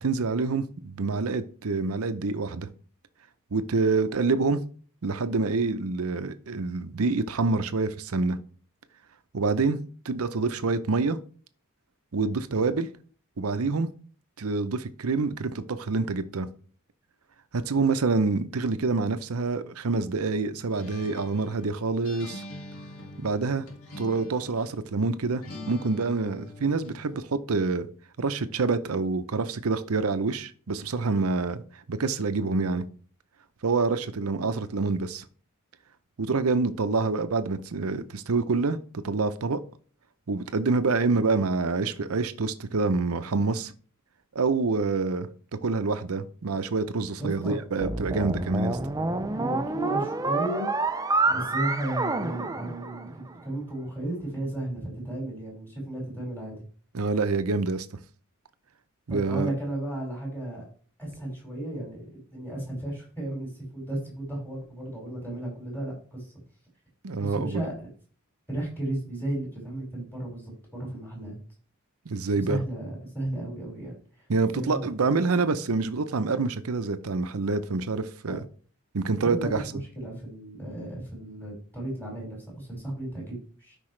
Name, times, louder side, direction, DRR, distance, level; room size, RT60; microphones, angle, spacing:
voice 1, 0.0-2.7 3.5-4.6 5.0-8.4 9.3-11.2 12.1-12.9 13.4-13.9 14.4-16.5 17.5-22.4 23.2-23.7 24.0-27.9 28.2-31.6 31.9-32.9 33.6-35.2 36.2-38.8 39.0-39.6 40.3-43.7 44.3-45.3 45.6-48.8 56.9-57.9 59.1-59.5 67.0-67.6 72.1-72.6 74.3-78.4 78.9-79.6, right 3 dB, 75° right, 11 dB, 0.7 m, -27 dB
Acoustic guitar, 20.7-24.8 25.4-27.0, left 2 dB, 70° left, 2.3 m, -44 dB
voice 2, 47.2-47.6 49.3-50.7 51.3-56.6 59.1-60.6 61.0-62.0 62.3-66.3 67.2-67.9 68.5-70.5 70.8-71.4 72.4-73.9 74.5-74.8 78.3-78.4 79.2-83.8, right 1 dB, 10° left, -4 dB, 5.0 m, -34 dB
sound 1, 47.8-53.3, right 3 dB, 15° right, 0.5 m, -28 dB
12.5 x 5.4 x 3.3 m, 0.43 s
head